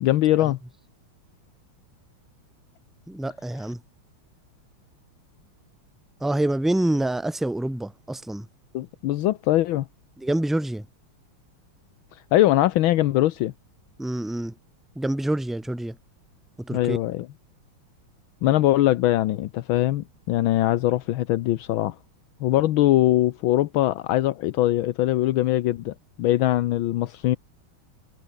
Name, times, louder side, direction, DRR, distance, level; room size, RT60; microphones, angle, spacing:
voice 1, 0.0-0.6 8.7-9.9 12.3-13.5 16.7-17.3 18.4-21.9 22.4-27.4, left 14 dB, 75° left, 1.5 m, -22 dB
voice 2, 3.1-3.8 6.2-8.5 10.2-10.8 14.0-14.6 14.9-16.0 16.6-17.0, right 1 dB, ahead, 1.6 m, -26 dB
omnidirectional pair, 2.3 m